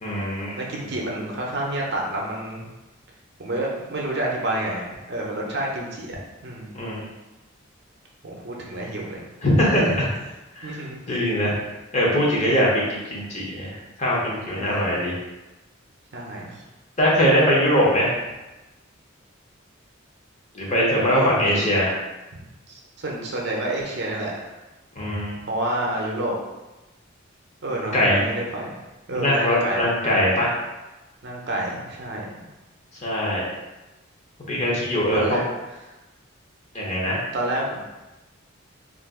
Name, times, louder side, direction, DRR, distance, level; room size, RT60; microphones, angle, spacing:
voice 1, 0.0-0.6 6.7-7.0 9.4-10.1 10.5-10.7 11.1-11.6 11.9-15.1 17.0-18.1 20.5-21.9 25.0-25.4 27.9-28.2 29.1-30.5 33.0-33.4 34.5-35.4 36.7-37.2, equal, 35° left, -5 dB, 0.7 m, -21 dB
voice 2, 0.6-2.7 3.4-6.1 6.4-6.7 8.2-9.2 9.8-9.9 10.6-11.0 14.5-14.9 16.1-16.5 21.1-21.4 22.7-24.5 25.5-26.4 27.6-28.8 29.1-29.9 31.2-32.2 35.1-35.4 37.3-37.8, right 1 dB, 55° right, -2 dB, 0.6 m, -28 dB
2.5 x 2.4 x 3.5 m, 1.1 s
head